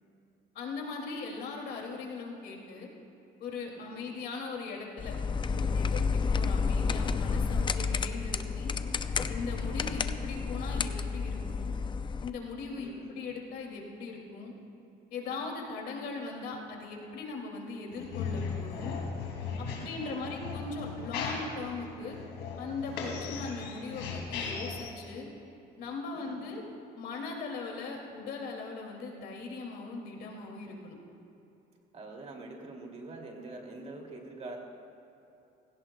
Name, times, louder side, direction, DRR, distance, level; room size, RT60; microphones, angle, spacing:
voice 1, 0.5-2.9 3.4-5.1 5.4-8.7 9.3-11.7 12.2-14.5 15.1-19.0 19.6-22.2 22.6-25.3 25.8-26.6 27.0-31.0, left 4 dB, 75° left, 0 dB, 2.5 m, -39 dB
voice 2, 3.8-4.2 9.7-10.0 12.7-13.3 19.7-20.3 26.1-26.6 31.9-34.6, right 2 dB, 40° right, 1 dB, 2.5 m, -46 dB
sound 1, 5.0-12.3, left 5 dB, 30° left, 0.5 m, -30 dB
sound 2, 17.9-24.9, left 5 dB, 90° left, 2.5 m, -37 dB
20.5 x 17.0 x 2.3 m, 2.9 s
cardioid pair, 110°, 17 cm